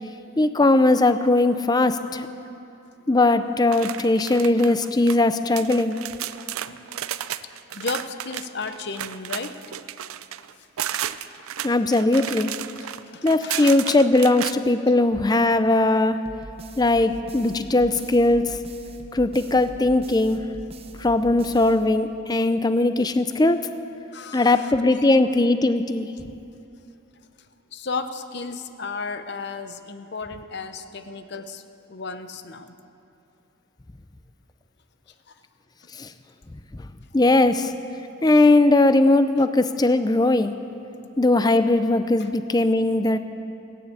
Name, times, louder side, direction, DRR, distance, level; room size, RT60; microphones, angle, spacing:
voice 1, 0.4-2.3 3.1-6.0 11.6-12.5 13.2-16.2 16.8-18.6 19.1-20.4 21.0-23.7 24.3-26.1 36.0-36.1 37.1-37.7 38.2-40.5 41.2-43.2, left 2 dB, 20° left, 11 dB, 0.4 m, -19 dB
sound 1, 3.7-5.2 5.6-14.5, right 11 dB, 85° right, 0.5 m, -33 dB
voice 2, 7.7-9.6 10.9-11.1 12.8-13.7 17.4-17.5 24.1-24.7 27.7-31.6 31.9-32.7 42.2-42.3, left 4 dB, 50° left, 9 dB, 0.8 m, -34 dB
sound 2, 16.2-22.4, right 2 dB, 30° right, 0.8 m, -43 dB
16.5 x 9.8 x 8.3 m, 2.8 s
head